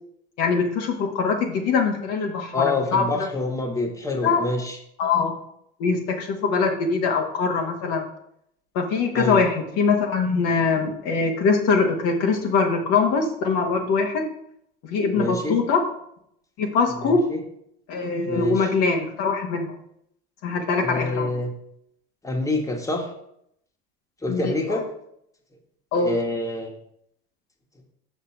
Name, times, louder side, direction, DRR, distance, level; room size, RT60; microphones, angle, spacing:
voice 1, 0.4-2.6 2.9-3.0 4.2-4.4 5.0-5.3 5.8-8.1 8.7-14.3 14.9-15.8 16.6-17.3 17.9-19.7 20.4-21.3 24.3-24.8 25.9-26.1, left 4 dB, 60° left, 2 dB, 1.4 m, -22 dB
voice 2, 2.5-4.8 9.1-9.4 15.1-15.6 17.0-17.4 18.2-18.7 20.8-21.5 22.2-23.1 24.2-24.8 26.0-26.7, left 2 dB, 10° left, 1 dB, 1.6 m, -26 dB
6.6 x 5.8 x 4.6 m, 0.73 s
hypercardioid pair, 75°, 29 cm